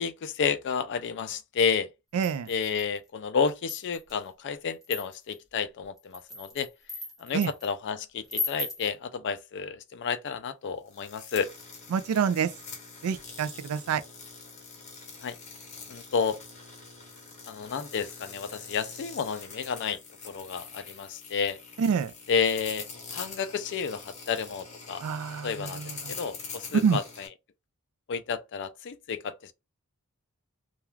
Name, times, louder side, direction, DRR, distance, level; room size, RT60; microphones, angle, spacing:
voice 1, 0.0-1.9 2.5-6.7 7.2-11.5 15.2-15.4 15.9-16.4 17.5-20.0 20.2-21.6 22.3-25.0 25.4-25.8 26.1-27.3 28.1-29.5, left 6 dB, 55° left, 0.4 m, -31 dB
voice 2, 2.1-2.5 7.3-7.5 11.9-12.5 13.0-14.0 21.8-22.1 25.0-26.1 26.8-27.0, right 6 dB, 70° right, 0.3 m, -27 dB
sound 1, 2.2-3.0 3.5-4.2 4.8-5.4 6.0-7.7 8.3-8.9, left 2 dB, ahead, 0.8 m, -36 dB
sound 2, 10.9-27.3, left 5 dB, 35° left, 0.7 m, -44 dB
2.3 x 2.3 x 3.1 m
head